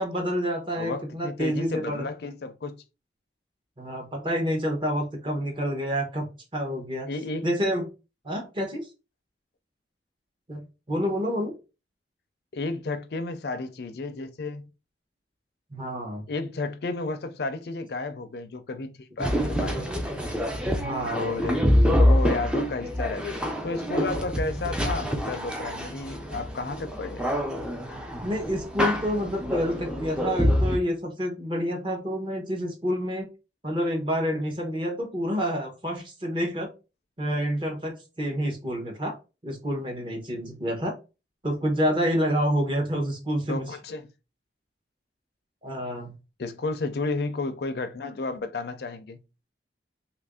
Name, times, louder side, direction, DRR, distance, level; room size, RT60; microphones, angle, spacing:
voice 1, 0.0-2.1 3.8-6.3 6.5-7.1 7.4-7.9 8.2-8.9 10.5-11.5 15.7-16.2 20.7-22.0 28.2-33.3 33.6-36.7 37.2-39.2 39.4-40.9 41.4-43.7 45.6-46.1, equal, 25° right, 0.8 m, -28 dB
voice 2, 0.7-2.8 7.1-7.5 12.5-14.7 16.3-19.9 21.1-21.6 22.0-23.4 23.6-27.2 43.5-44.1 46.4-49.2, left 3 dB, 55° left, 0.4 m, -32 dB
sound 1, 19.2-30.8, equal, 5° right, 0.4 m, -26 dB
2.9 x 2.5 x 3.5 m
head